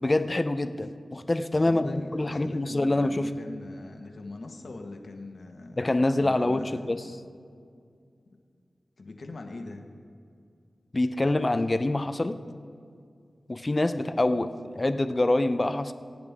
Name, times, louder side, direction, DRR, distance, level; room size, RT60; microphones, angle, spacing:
voice 1, 0.0-3.3 5.8-7.0 10.9-12.4 13.5-15.9, left 2 dB, 30° left, 10 dB, 0.6 m, -25 dB
voice 2, 1.6-5.8 6.2-6.9 9.0-9.9, left 2 dB, 65° left, 3 dB, 1.4 m, -42 dB
22.0 x 8.8 x 3.6 m, 2.3 s
cardioid pair, 60°, 0 cm